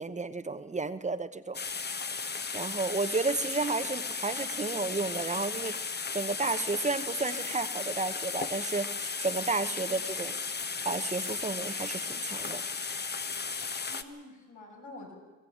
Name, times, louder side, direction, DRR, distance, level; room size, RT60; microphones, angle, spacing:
voice 1, 0.0-1.6 2.5-5.8 6.1-12.6, right 3 dB, 25° right, 10 dB, 1.0 m, -32 dB
sound 1, 1.5-14.0, left 5 dB, 35° left, 1.3 m, -35 dB
voice 2, 5.0-5.5 9.6-9.7 13.8-15.2, left 2 dB, 75° left, 0 dB, 6.8 m, -48 dB
23.0 x 14.5 x 8.7 m, 1.3 s
cardioid pair, 90°, 30 cm